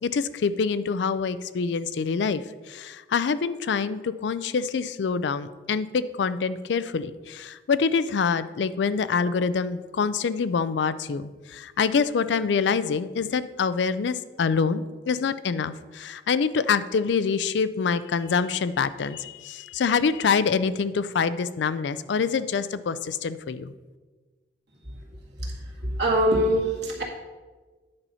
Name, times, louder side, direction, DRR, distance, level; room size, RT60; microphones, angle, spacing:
voice 1, 0.0-23.7, left 5 dB, 75° left, 14 dB, 0.4 m, -26 dB
voice 2, 25.3-27.0, equal, 70° right, -2 dB, 1.9 m, -24 dB
9.7 x 4.2 x 5.5 m, 1.3 s
head